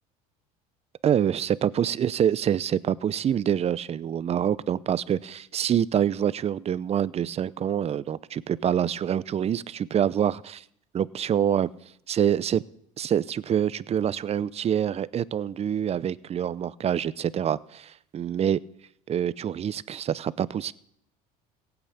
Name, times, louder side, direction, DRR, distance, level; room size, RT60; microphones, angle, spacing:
voice 1, 1.0-10.6 10.9-11.7 12.1-12.6 13.0-18.6 19.1-20.7, right 9 dB, 35° right, 19 dB, 0.6 m, -26 dB
16.0 x 8.0 x 8.6 m, 0.73 s
supercardioid pair, 85°, 19 cm